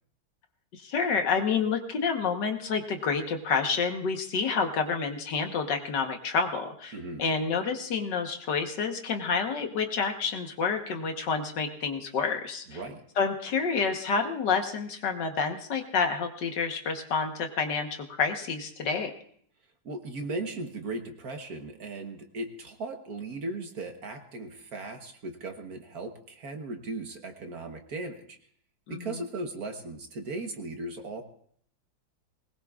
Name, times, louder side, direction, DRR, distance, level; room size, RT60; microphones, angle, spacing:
voice 1, 0.7-6.9 7.2-12.6 13.2-19.1 28.9-29.1, left 5 dB, 65° left, 5 dB, 1.8 m, -29 dB
voice 2, 6.9-7.2 12.7-13.0 19.8-28.4 28.9-31.2, right 2 dB, 55° right, 5 dB, 1.6 m, -37 dB
20.5 x 19.5 x 2.4 m, 0.63 s
omnidirectional pair, 2.1 m